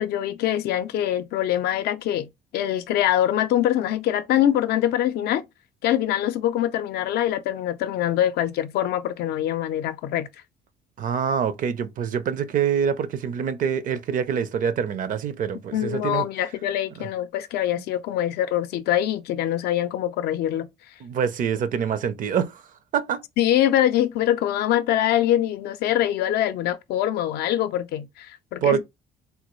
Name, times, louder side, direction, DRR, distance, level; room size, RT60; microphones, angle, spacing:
voice 1, 0.0-5.4 5.8-10.3 15.7-20.7 23.4-28.8, left 11 dB, 70° left, 0.5 m, -24 dB
voice 2, 11.0-16.2 17.0-17.1 21.0-22.6 22.9-23.2 28.6-28.8, right 7 dB, 50° right, 0.5 m, -25 dB
3.4 x 2.3 x 3.0 m
cardioid pair, 110°, 17 cm